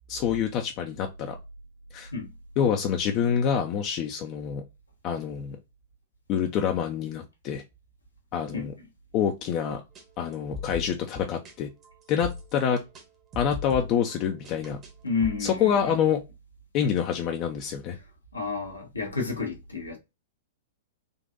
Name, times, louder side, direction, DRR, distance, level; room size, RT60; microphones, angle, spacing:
voice 1, 0.1-1.4 1.9-2.1 2.6-4.6 5.0-5.6 6.3-7.6 8.3-8.7 9.1-9.8 10.2-11.7 12.1-12.8 13.4-14.8 15.4-16.2 16.7-18.0, left 8 dB, 40° left, 0.5 m, -26 dB
sound 1, 10.0-10.1 10.3-11.5 11.8-13.1 13.3-14.9 15.2-15.7, left 4 dB, 30° right, 1.1 m, -40 dB
voice 2, 15.0-15.7 18.3-20.0, left 4 dB, 90° left, 1.0 m, -30 dB
3.8 x 2.5 x 2.5 m
figure-of-eight pair, 105°, 0 cm